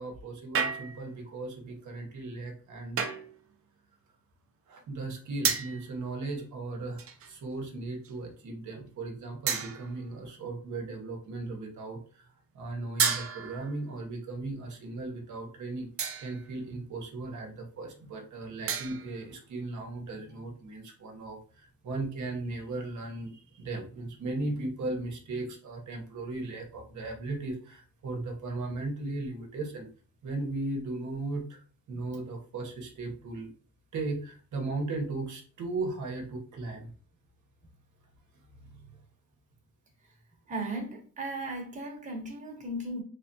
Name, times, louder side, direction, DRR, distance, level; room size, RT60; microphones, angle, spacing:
voice 1, 0.0-3.1 4.7-12.3 12.5-15.9 16.2-29.9 30.2-33.5 33.9-36.9 38.6-38.7, right 2 dB, 65° right, 1 dB, 1.0 m, -37 dB
sound 1, 0.5-1.2 3.0-3.4 5.4-5.9 7.0-7.4 8.0-8.2 9.5-10.1 13.0-13.8 16.0-16.5 18.7-19.2, right 6 dB, 45° right, 0.6 m, -31 dB
voice 2, 40.5-43.0, right 1 dB, 25° right, 0 dB, 1.1 m, -36 dB
3.4 x 3.3 x 2.7 m, 0.41 s
cardioid pair, 125°, 32 cm